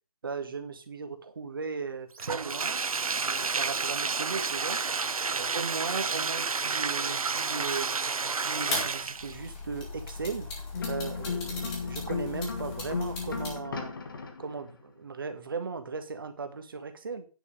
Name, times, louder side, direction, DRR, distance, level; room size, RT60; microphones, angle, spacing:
voice 1, 0.2-2.8 3.2-4.8 5.3-10.5 10.9-13.9 14.4-17.3, right 5 dB, 35° right, 8 dB, 1.6 m, -37 dB
Bathtub (filling or washing), 2.2-9.4, right 5 dB, 70° right, 0.7 m, -30 dB
sound 1, 8.7-13.6, left 3 dB, 10° left, 1.6 m, -38 dB
sound 2, 10.7-14.7, left 5 dB, 35° left, 1.5 m, -35 dB
9.8 x 5.4 x 6.5 m, 0.34 s
figure-of-eight pair, 165°, 19 cm